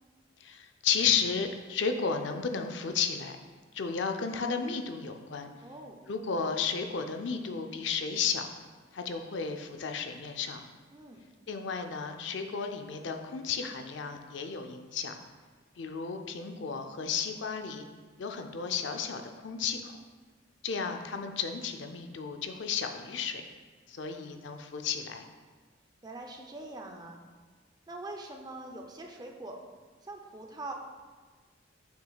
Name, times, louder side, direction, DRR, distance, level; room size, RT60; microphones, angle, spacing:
voice 1, 0.4-3.4 3.7-5.5 6.1-8.5 8.9-10.6 11.5-15.1 15.8-17.8 18.2-20.0 20.6-23.4 23.9-25.2, left 6 dB, 65° left, 5 dB, 0.5 m, -33 dB
voice 2, 5.6-6.0 10.9-11.2 26.0-27.2 27.9-29.6 30.0-30.7, right 2 dB, 20° right, 2 dB, 0.5 m, -43 dB
7.4 x 5.8 x 2.3 m, 1.5 s
head